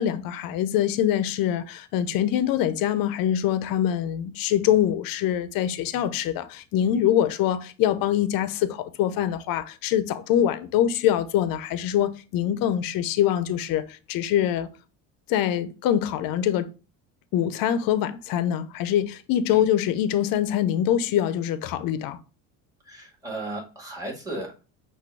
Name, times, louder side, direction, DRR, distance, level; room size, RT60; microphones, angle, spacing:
voice 1, 0.0-13.8 14.1-14.7 15.3-16.7 17.3-22.2, left 10 dB, 65° left, 0.7 m, -24 dB
voice 2, 22.8-24.6, right 2 dB, 10° right, 1.9 m, -35 dB
5.9 x 2.6 x 3.3 m
supercardioid pair, 100°, 37 cm